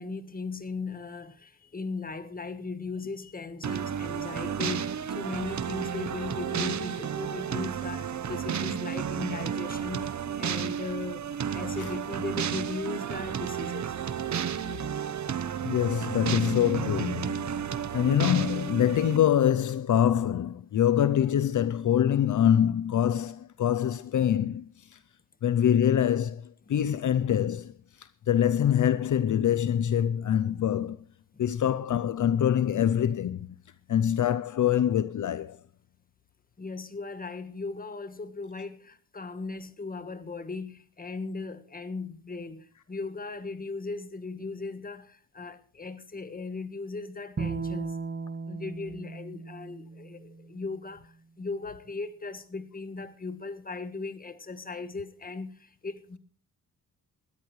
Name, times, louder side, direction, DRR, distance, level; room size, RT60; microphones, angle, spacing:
voice 1, 0.0-10.1 10.4-14.0 31.3-31.5 36.6-47.9 48.5-56.2, left 4 dB, 25° left, 1.5 m, -38 dB
sound 1, 3.6-19.2, right 8 dB, 55° right, 1.0 m, -32 dB
voice 2, 15.6-17.5 17.9-25.0 25.4-27.7 28.0-31.0 31.4-33.5 33.9-35.6, left 10 dB, 60° left, 0.6 m, -25 dB
Bowed string instrument, 47.4-50.6, right 4 dB, 30° right, 1.5 m, -36 dB
20.0 x 13.5 x 3.2 m
wide cardioid pair, 120°, 34 cm